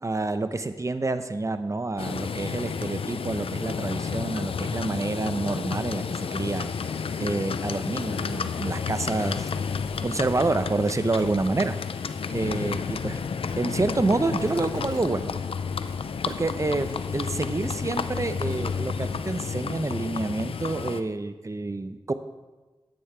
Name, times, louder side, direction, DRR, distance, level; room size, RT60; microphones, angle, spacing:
voice 1, 0.0-11.7 12.3-13.2 13.6-15.3 16.3-22.1, right 2 dB, 35° right, 10 dB, 0.6 m, -28 dB
Livestock farm animals working animals, 2.0-21.0, left 6 dB, 85° left, 0.4 m, -31 dB
sound 1, 9.7-10.6 11.2-11.3 12.3-13.1 13.5-14.1 14.4-19.0, left 2 dB, 45° left, 2.8 m, -47 dB
10.5 x 8.6 x 4.5 m, 1.2 s
wide cardioid pair, 55°, 9 cm